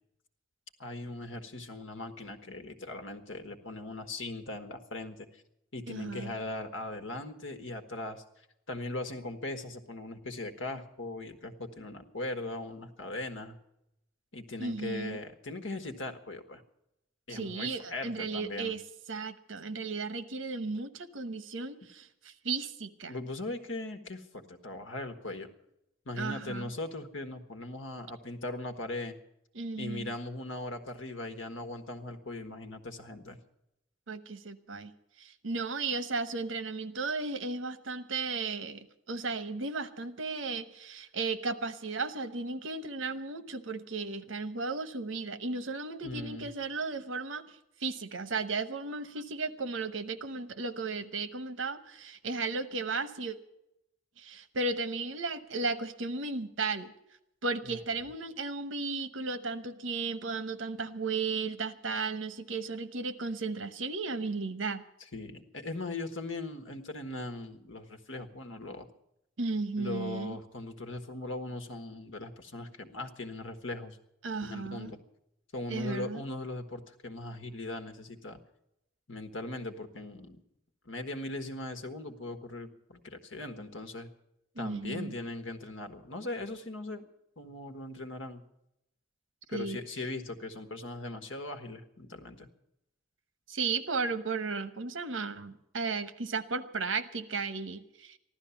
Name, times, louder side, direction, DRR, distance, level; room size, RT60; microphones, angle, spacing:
voice 1, 0.8-5.4 5.7-8.2 8.7-13.6 14.3-16.6 17.3-18.7 23.1-25.5 26.0-29.1 29.8-33.4 46.0-46.5 57.6-57.8 65.1-68.9 69.7-74.0 74.4-75.0 75.5-78.4 79.1-80.4 80.8-84.1 84.6-87.1 87.4-88.4 89.5-92.5, left 2 dB, 85° left, 7 dB, 1.5 m, -39 dB
voice 2, 5.9-6.4 14.6-15.2 17.3-18.8 19.1-23.1 26.2-26.7 29.5-30.1 34.1-34.9 35.2-53.4 54.2-56.9 57.4-64.8 69.4-70.4 74.2-74.9 75.7-76.2 84.6-85.1 89.5-89.8 93.5-98.2, right 4 dB, 90° right, 12 dB, 1.0 m, -35 dB
15.0 x 12.5 x 7.1 m, 0.84 s
head